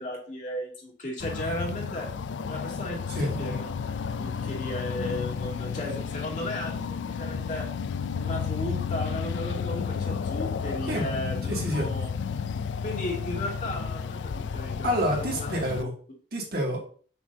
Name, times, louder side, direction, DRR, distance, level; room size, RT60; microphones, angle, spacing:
voice 1, 0.0-2.1 2.5-3.7 4.2-7.7 8.2-12.1 12.8-15.5, left 1 dB, 45° left, -2 dB, 2.5 m, -35 dB
sound 1, 1.2-15.8, left 6 dB, 85° left, 0.4 m, -32 dB
voice 2, 3.1-3.5 10.9-11.0 11.5-11.9 14.8-15.9 16.3-16.9, equal, 55° right, -1 dB, 2.2 m, -28 dB
7.2 x 6.8 x 2.7 m, 0.43 s
head